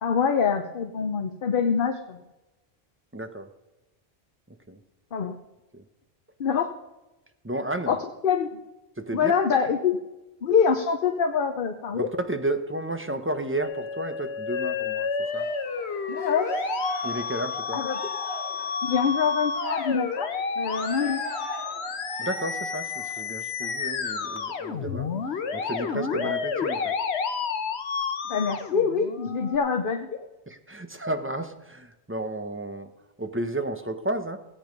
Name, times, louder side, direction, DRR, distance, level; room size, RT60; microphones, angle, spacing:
voice 1, 0.0-2.2 5.1-5.4 6.4-6.7 7.9-8.0 8.2-8.5 9.1-10.0 10.4-12.1 16.1-16.5 17.7-18.0 18.8-21.2 26.2-26.3 28.3-30.2, left 6 dB, 55° left, 6 dB, 1.0 m, -25 dB
voice 2, 3.1-3.5 4.5-4.8 5.7-5.8 7.4-8.0 9.0-9.3 11.9-15.5 17.0-17.9 22.2-25.1 25.5-26.9 30.5-32.9 33.2-34.4, right 1 dB, 15° right, 7 dB, 0.9 m, -32 dB
Musical instrument, 13.6-29.6, left 6 dB, 90° left, 1.2 m, -31 dB
Cheering, 15.2-23.2 23.6-23.8 24.1-25.1, right 1 dB, 55° right, 4.7 m, -38 dB
16.5 x 8.7 x 5.3 m, 1.0 s
omnidirectional pair, 1.1 m